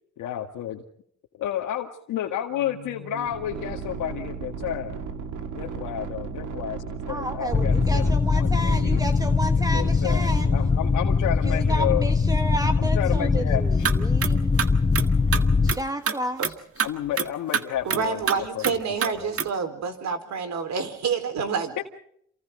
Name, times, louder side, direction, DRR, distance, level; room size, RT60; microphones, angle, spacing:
voice 1, 0.2-0.8 1.4-5.0 5.6-9.0 9.7-12.1 12.8-13.9 16.8-18.7, left 11 dB, 85° left, -1 dB, 2.0 m, -31 dB
sound 1, 2.5-11.1, right 5 dB, 85° right, 2.6 m, -36 dB
voice 2, 7.1-10.5 11.4-14.6 15.6-16.4, right 1 dB, 10° right, 8 dB, 1.2 m, -31 dB
sound 2, 7.5-15.7, left 4 dB, 20° left, 0.8 m, -22 dB
sound 3, 13.8-13.9 14.2-14.3 14.6-15.4 15.7-15.8 16.1-16.2 16.4-16.5 16.8-16.9 17.2-17.3 17.5-17.6 17.9-18.4 18.6-18.7 19.0-19.1 19.4-19.5, right 7 dB, 50° right, 1.7 m, -25 dB
voice 3, 17.8-21.9, right 6 dB, 65° right, 10 dB, 4.4 m, -28 dB
28.0 x 28.0 x 3.9 m, 0.68 s
cardioid pair, 90°, 30 cm